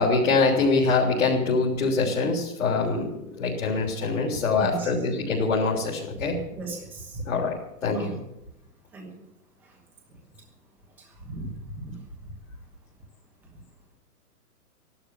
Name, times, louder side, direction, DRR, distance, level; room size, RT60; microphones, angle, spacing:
voice 1, 0.0-6.4 7.3-8.2, left 4 dB, 55° left, -3 dB, 3.7 m, -24 dB
voice 2, 4.5-4.9 6.5-7.3 7.9-8.1 8.9-9.1 9.6-9.8 10.1-10.2 11.0-11.5 11.8-12.0 12.2-12.3, right 3 dB, 5° right, 1 dB, 1.1 m, -37 dB
15.0 x 12.0 x 7.2 m, 0.85 s
hypercardioid pair, 175°, 46 cm